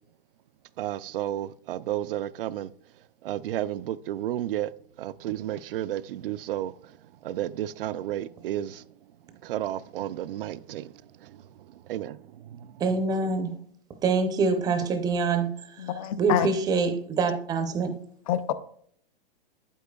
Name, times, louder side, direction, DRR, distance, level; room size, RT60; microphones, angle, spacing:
voice 1, 0.8-2.7 3.2-4.7 5.0-7.0 7.2-8.9 9.4-12.8, right 12 dB, 70° right, 0.4 m, -32 dB
voice 2, 12.8-13.5 14.0-15.9 16.2-18.0, right 4 dB, 15° right, 0.6 m, -25 dB
voice 3, 15.8-16.5 18.3-18.5, left 10 dB, 40° left, 0.5 m, -26 dB
8.7 x 8.3 x 2.3 m
hypercardioid pair, 150°, 29 cm